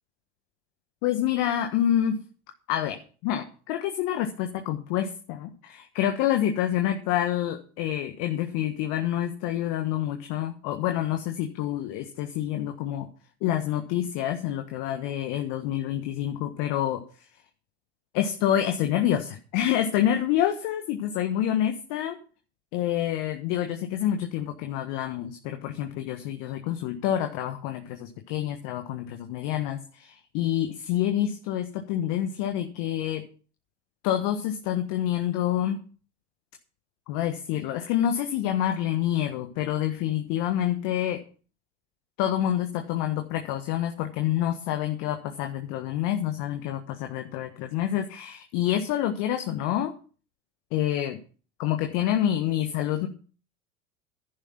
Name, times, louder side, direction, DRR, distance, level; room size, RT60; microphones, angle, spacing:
voice 1, 1.0-2.2 2.7-13.1 13.4-17.0 18.1-22.2 22.7-33.3 34.0-35.8 37.1-41.2 42.2-49.9 50.7-51.2 51.6-53.1, left 11 dB, 60° left, 5 dB, 1.5 m, -27 dB
11.0 x 10.5 x 6.0 m, 0.39 s
hypercardioid pair, 80°, 36 cm